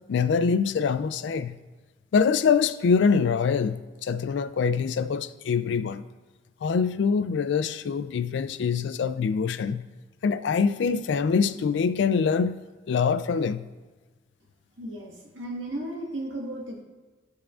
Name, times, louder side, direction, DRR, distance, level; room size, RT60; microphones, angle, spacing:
voice 1, 0.1-1.6 2.1-6.0 6.6-9.9 10.2-12.6 12.9-13.7, left 5 dB, 65° left, 0.3 m, -24 dB
voice 2, 14.8-16.8, right 1 dB, 75° right, 1.6 m, -35 dB
12.5 x 4.8 x 2.4 m
head